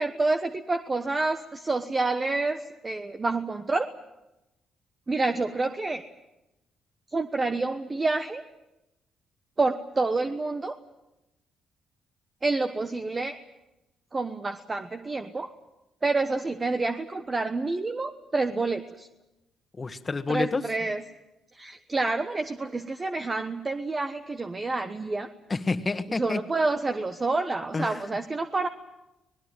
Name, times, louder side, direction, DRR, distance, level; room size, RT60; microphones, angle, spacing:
voice 1, 0.0-3.9 5.1-6.0 7.1-8.4 9.6-10.8 12.4-13.4 14.1-15.5 16.0-19.1 20.3-21.0 21.5-25.3 26.1-28.7, right 3 dB, 25° right, 8 dB, 1.2 m, -28 dB
voice 2, 19.8-20.6 25.5-26.4 27.7-28.1, left 3 dB, 30° left, 9 dB, 1.7 m, -29 dB
26.0 x 19.5 x 9.1 m, 0.96 s
cardioid pair, 90°, 0 cm